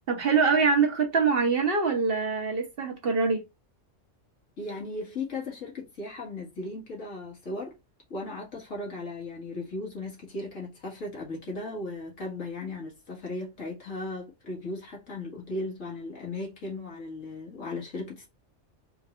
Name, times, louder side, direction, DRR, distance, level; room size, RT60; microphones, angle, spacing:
voice 1, 0.1-3.4, right 5 dB, 50° right, 1.1 m, -24 dB
voice 2, 4.6-7.8 8.1-18.3, left 2 dB, 85° left, 2.1 m, -36 dB
4.5 x 3.2 x 2.4 m
omnidirectional pair, 1.3 m